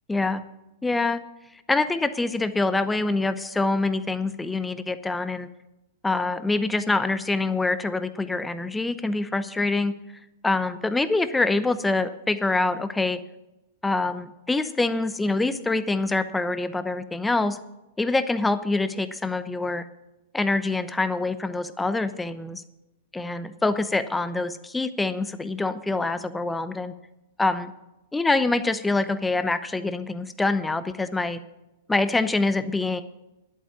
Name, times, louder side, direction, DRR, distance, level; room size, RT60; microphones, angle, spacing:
voice 1, 0.1-0.4 0.8-1.2 1.7-5.5 6.0-9.9 10.4-13.2 13.8-17.6 18.0-19.9 20.3-22.6 23.2-26.9 27.4-27.7 28.1-31.4 31.9-33.0, left 3 dB, 10° left, 12 dB, 0.8 m, -25 dB
11.0 x 8.5 x 7.2 m, 0.95 s
hypercardioid pair, 105°, 0 cm